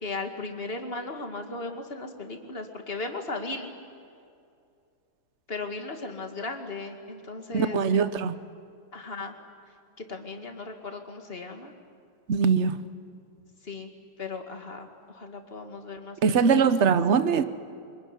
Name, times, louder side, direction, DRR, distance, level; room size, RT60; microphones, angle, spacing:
voice 1, 0.0-3.7 5.5-7.8 8.9-9.4 10.0-11.7 13.6-13.9 14.2-16.8, left 3 dB, 30° left, 4 dB, 2.2 m, -37 dB
voice 2, 7.5-8.3 12.3-12.8 16.2-17.4, right 6 dB, 50° right, 12 dB, 0.9 m, -22 dB
25.0 x 22.0 x 9.9 m, 2.4 s
omnidirectional pair, 2.2 m